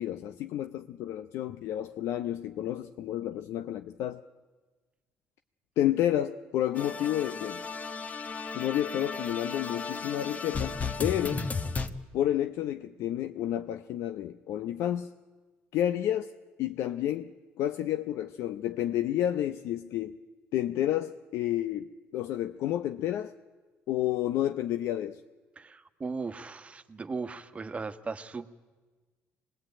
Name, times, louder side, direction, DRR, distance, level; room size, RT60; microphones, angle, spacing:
voice 1, 0.0-4.2 5.8-7.6 8.5-11.5 12.1-15.1 15.7-16.3 16.6-20.2 20.5-23.3 23.9-25.2, left 12 dB, 75° left, 9 dB, 0.7 m, -30 dB
sound 1, 6.8-11.9, left 4 dB, 30° left, 1.3 m, -35 dB
voice 2, 25.6-28.5, right 4 dB, 25° right, 9 dB, 1.4 m, -37 dB
24.5 x 20.0 x 8.8 m, 1.3 s
cardioid pair, 95°, 5 cm